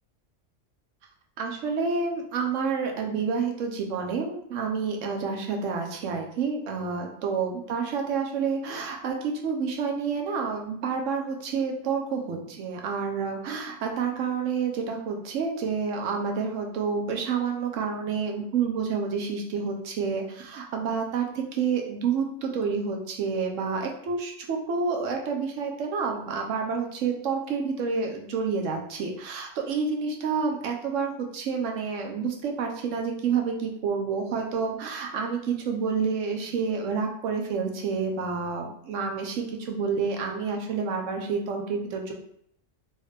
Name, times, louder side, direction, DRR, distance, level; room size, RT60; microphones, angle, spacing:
voice 1, 1.4-42.1, right 5 dB, 80° right, 2 dB, 1.0 m, -29 dB
2.9 x 2.7 x 3.3 m, 0.70 s
omnidirectional pair, 1.3 m